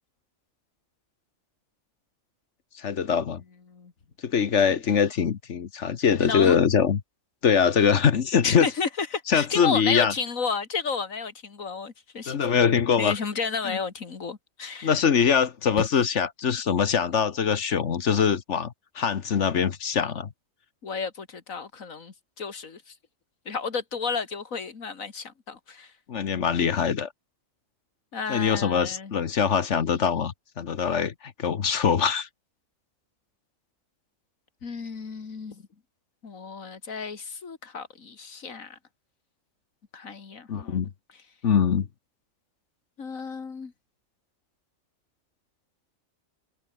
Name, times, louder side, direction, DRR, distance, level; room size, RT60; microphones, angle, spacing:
voice 1, 2.7-3.4 4.2-7.0 7.4-8.7 9.3-10.1 12.3-13.2 13.6-13.8 14.8-20.3 26.1-27.1 28.3-32.3 40.5-40.9 41.4-41.9, left 7 dB, 65° left, 1.4 m, -23 dB
voice 2, 6.2-6.6 8.4-12.7 13.0-14.9 15.8-15.9 20.8-22.9 23.5-25.9 28.1-29.1 34.6-35.6 36.2-38.8 39.9-40.8 43.0-43.7, left 5 dB, 90° left, 2.5 m, -32 dB
omnidirectional pair, 1.4 m